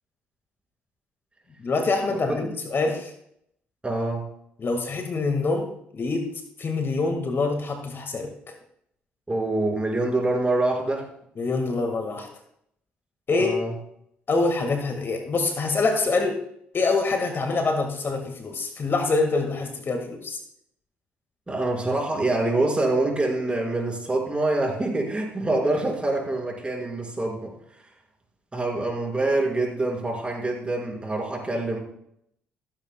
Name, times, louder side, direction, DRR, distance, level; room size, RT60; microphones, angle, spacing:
voice 1, 1.6-3.1 4.6-5.7 5.9-8.5 11.4-12.3 13.3-13.5 14.3-16.4 16.7-20.4, left 3 dB, 40° left, 5 dB, 1.7 m, -25 dB
voice 2, 3.8-4.3 9.3-11.1 13.3-13.7 21.5-27.5 28.5-31.8, right 2 dB, 20° right, 0 dB, 5.0 m, -25 dB
16.5 x 14.0 x 2.2 m, 0.72 s
hypercardioid pair, 50°, 6 cm